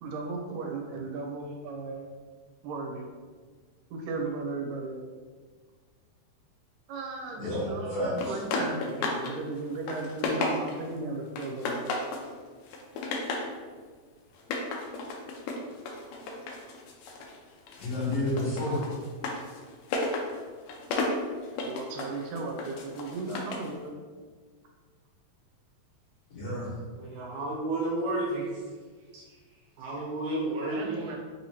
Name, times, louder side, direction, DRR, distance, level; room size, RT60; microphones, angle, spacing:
voice 1, 0.0-2.1 2.6-3.1 3.9-5.1 6.9-12.0 18.7-18.9 21.6-24.0 30.7-31.2, right 3 dB, 90° right, 1 dB, 2.2 m, -36 dB
voice 2, 7.4-8.4 17.8-18.8 26.3-26.7, left 1 dB, 55° left, -10 dB, 2.3 m, -30 dB
sound 1, 8.2-9.3 9.7-10.9 11.4-12.3 12.7-13.5 14.4-17.4 17.7-23.7, left 3 dB, 85° left, 2.1 m, -33 dB
voice 3, 26.9-28.5 29.1-29.2 29.8-31.1, right 2 dB, 75° right, -4 dB, 2.0 m, -31 dB
5.3 x 2.8 x 2.9 m, 1.5 s
omnidirectional pair, 3.7 m